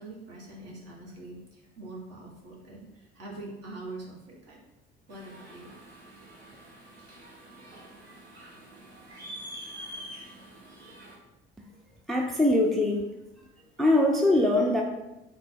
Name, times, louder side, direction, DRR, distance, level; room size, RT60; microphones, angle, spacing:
voice 1, 0.0-4.6 5.1-5.7, right 2 dB, 50° right, -2 dB, 1.4 m, -44 dB
sound 1, 5.1-11.2, equal, 80° right, 0.9 m, -46 dB
voice 2, 12.1-13.1 13.4-13.5 13.8-14.8, left 1 dB, ahead, 1 dB, 0.4 m, -23 dB
3.9 x 2.3 x 4.5 m, 0.96 s
hypercardioid pair, 60°, 31 cm